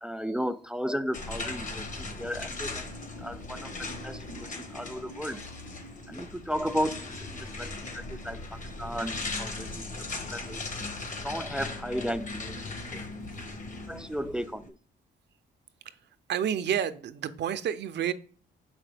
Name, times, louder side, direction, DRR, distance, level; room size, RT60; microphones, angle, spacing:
voice 1, 0.0-5.4 6.1-10.6 11.2-13.1 13.9-14.7, equal, 5° right, 0.3 m, -35 dB
sound 1, 1.1-14.7, left 3 dB, 40° left, 1.3 m, -38 dB
voice 2, 16.3-18.1, right 9 dB, 60° right, 0.5 m, -29 dB
6.0 x 4.9 x 3.3 m
cardioid pair, 90°, 20 cm